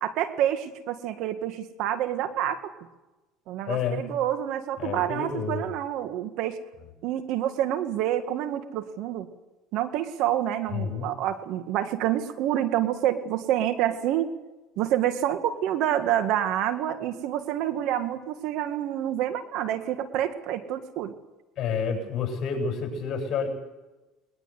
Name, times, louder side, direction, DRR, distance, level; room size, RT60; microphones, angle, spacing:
voice 1, 0.0-2.7 3.5-6.6 7.0-9.3 9.7-14.3 14.8-21.1, right 11 dB, 65° right, 10 dB, 1.8 m, -28 dB
voice 2, 3.7-4.0 4.8-5.7 10.7-11.2 21.6-23.5, left 6 dB, 45° left, 2 dB, 7.9 m, -29 dB
21.5 x 20.0 x 8.2 m, 1.1 s
supercardioid pair, 100°, 0 cm